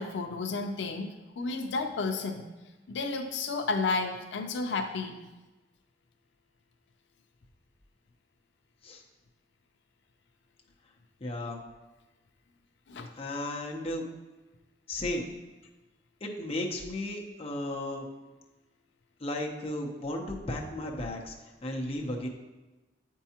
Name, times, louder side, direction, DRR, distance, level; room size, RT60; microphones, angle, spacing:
voice 1, 0.0-2.4 2.9-5.2 12.9-13.1, left 3 dB, 90° left, 5 dB, 0.5 m, -32 dB
voice 2, 11.2-11.6 13.2-14.1 14.9-15.3 16.2-18.1 19.2-21.3 21.6-22.3, left 1 dB, 35° left, 0 dB, 0.7 m, -34 dB
8.0 x 4.6 x 2.8 m, 1.1 s
head